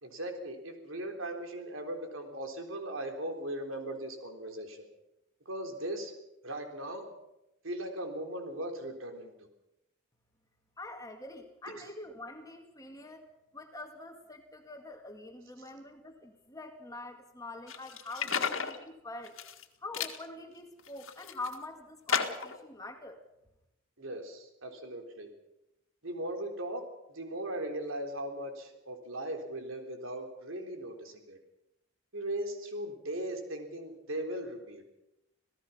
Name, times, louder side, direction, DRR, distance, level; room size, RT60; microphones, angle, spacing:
voice 1, 0.0-4.9 5.5-6.1 6.4-7.1 7.6-9.3 11.8-11.9 24.0-25.3 26.0-26.8 27.1-31.4 32.1-34.9, right 1 dB, 80° right, 4 dB, 3.6 m, -38 dB
voice 2, 10.8-13.3 13.5-19.4 19.8-23.2, left 2 dB, 15° left, 4 dB, 2.1 m, -45 dB
sound 1, 17.7-18.8 19.2-19.6 19.9-20.2 20.8-21.5 22.1-22.6, left 6 dB, 80° left, 1.9 m, -33 dB
27.0 x 17.5 x 5.7 m, 0.89 s
head